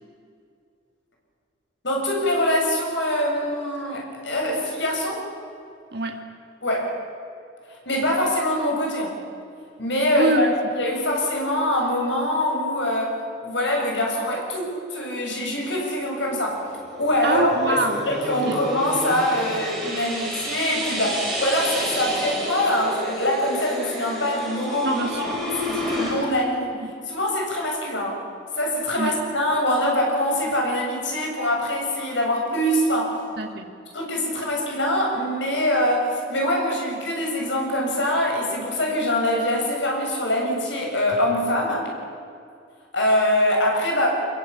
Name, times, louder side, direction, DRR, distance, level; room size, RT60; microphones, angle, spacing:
voice 1, 1.8-5.2 6.6-6.9 7.9-9.2 9.8-10.5 10.7-16.6 17.0-17.7 18.1-26.7 27.1-28.2 28.6-33.2 33.9-41.9 42.9-44.1, left 1 dB, 70° left, 0 dB, 7.8 m, -24 dB
voice 2, 5.9-6.2 10.2-10.5 17.2-18.1 18.5-18.6 24.8-25.4 26.8-26.9 29.0-29.2 33.4-33.8, right 1 dB, 55° right, 3 dB, 2.4 m, -25 dB
sound 1, 16.1-26.2, equal, ahead, 6.9 m, -30 dB
25.0 x 22.0 x 8.8 m, 2.5 s
head